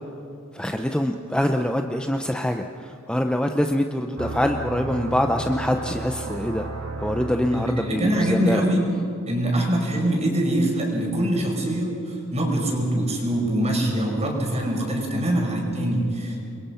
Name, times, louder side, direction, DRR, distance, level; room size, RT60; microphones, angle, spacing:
voice 1, 0.5-6.7 7.0-8.6, equal, 5° left, 5 dB, 0.7 m, -24 dB
sound 1, 4.2-8.1, right 2 dB, 80° right, 2.4 m, -33 dB
voice 2, 7.5-8.8 9.3-16.4, right 1 dB, 30° right, 1 dB, 5.3 m, -24 dB
28.5 x 22.5 x 5.8 m, 2.8 s
head